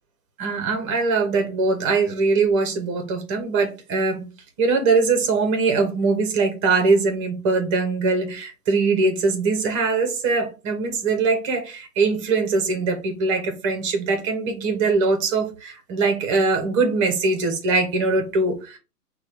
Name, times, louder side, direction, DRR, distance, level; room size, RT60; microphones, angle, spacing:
voice 1, 0.4-18.8, right 4 dB, 20° right, 0.7 m, -22 dB
5.9 x 2.3 x 3.3 m
hypercardioid pair, 145°, 48 cm